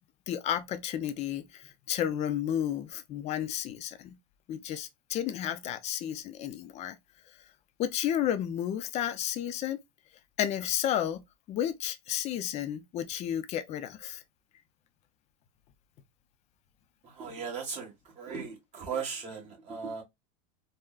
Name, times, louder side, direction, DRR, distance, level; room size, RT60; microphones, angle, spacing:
voice 1, 0.3-4.2 4.5-7.0 7.8-9.8 10.4-11.2 11.5-14.2, left 10 dB, 35° left, 0.5 m, -32 dB
voice 2, 17.0-20.0, right 6 dB, 35° right, 1.6 m, -37 dB
3.6 x 2.1 x 2.3 m
supercardioid pair, 135°, 20 cm